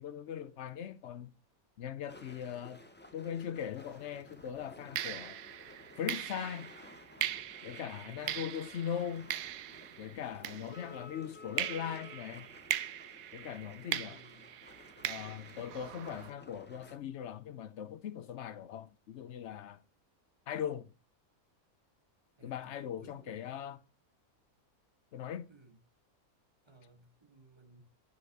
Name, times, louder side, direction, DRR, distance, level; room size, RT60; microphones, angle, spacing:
voice 1, 0.0-1.3 1.8-2.8 3.1-5.4 6.0-6.7 7.6-9.3 10.0-12.5 13.3-14.2 15.0-19.8 20.5-20.9 22.4-23.8 25.1-25.5, left 9 dB, 60° left, 0.8 m, -40 dB
sound 1, 2.1-17.0, left 2 dB, 10° left, 0.6 m, -55 dB
sound 2, 3.8-4.0 4.9-11.1 11.6-16.3, right 12 dB, 75° right, 1.0 m, -40 dB
voice 2, 7.8-8.5 10.3-10.8 13.9-14.5 22.4-22.7 23.0-23.5 25.5-25.8 26.6-27.8, right 2 dB, 20° right, 1.4 m, -59 dB
11.5 x 4.2 x 4.1 m
omnidirectional pair, 1.5 m